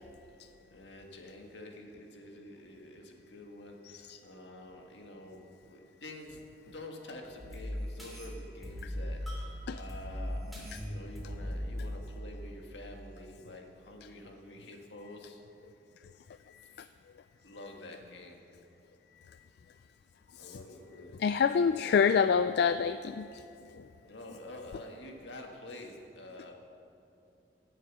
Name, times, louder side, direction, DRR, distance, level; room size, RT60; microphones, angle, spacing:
voice 1, 0.7-10.4 10.8-15.4 16.6-16.9 17.4-18.4 20.4-21.1 21.6-22.0 24.0-26.5, left 1 dB, 85° left, 2 dB, 1.7 m, -48 dB
sound 1, 7.4-13.0, equal, ahead, 3.4 m, -39 dB
voice 2, 21.2-23.4 23.7-23.9, left 6 dB, 65° left, 11 dB, 0.3 m, -26 dB
17.0 x 7.8 x 6.1 m, 2.6 s
head